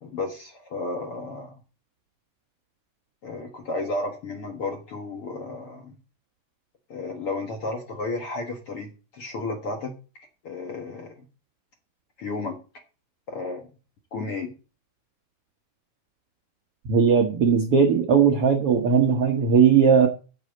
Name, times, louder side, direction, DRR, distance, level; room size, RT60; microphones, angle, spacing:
voice 1, 0.0-1.5 3.2-6.0 6.9-9.9 10.4-11.3 12.2-12.6 13.3-13.7 14.1-14.5, left 2 dB, 50° left, 3 dB, 1.7 m, -32 dB
voice 2, 16.9-20.1, right 6 dB, 70° right, 4 dB, 1.3 m, -18 dB
8.2 x 7.2 x 7.8 m, 0.34 s
omnidirectional pair, 4.5 m